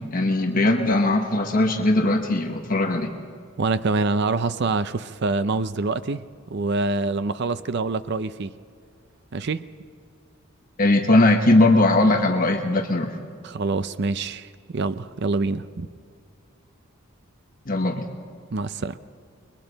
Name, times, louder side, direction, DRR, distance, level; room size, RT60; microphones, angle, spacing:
voice 1, 0.0-3.1 10.8-13.2 17.7-18.1, left 2 dB, 40° left, 4 dB, 1.2 m, -19 dB
voice 2, 3.6-6.2 6.5-8.5 9.3-9.6 13.4-15.9 18.5-19.0, right 3 dB, 55° right, 13 dB, 0.5 m, -25 dB
30.0 x 22.0 x 4.0 m, 2.3 s
head